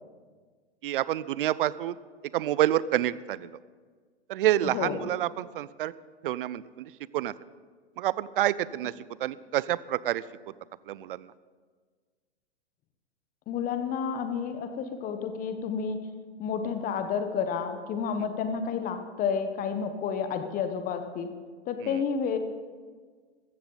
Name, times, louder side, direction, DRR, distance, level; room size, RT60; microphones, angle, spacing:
voice 1, 0.8-1.9 2.3-3.5 4.3-5.9 6.2-7.3 8.0-8.9 9.2-10.2 10.9-11.3, right 13 dB, 55° right, 19 dB, 0.5 m, -28 dB
voice 2, 4.6-5.1 13.5-16.0 16.4-21.3 21.7-22.4, left 6 dB, 25° left, 8 dB, 1.0 m, -30 dB
14.5 x 14.0 x 4.0 m, 1.6 s
hypercardioid pair, 120°, 33 cm